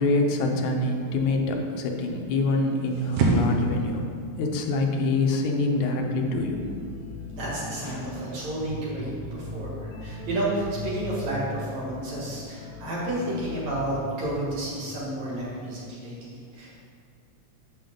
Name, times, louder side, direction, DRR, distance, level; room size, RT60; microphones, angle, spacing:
voice 1, 0.0-4.1 4.4-6.6 7.9-8.1, left 2 dB, 85° left, 2 dB, 2.2 m, -25 dB
sound 1, 0.9-8.4, right 2 dB, 90° right, 2.5 m, -31 dB
sound 2, 6.0-15.6, left 2 dB, 70° left, 1.6 m, -39 dB
voice 2, 7.4-16.8, right 1 dB, 70° right, -6 dB, 3.3 m, -31 dB
8.9 x 6.7 x 3.8 m, 2.2 s
omnidirectional pair, 3.3 m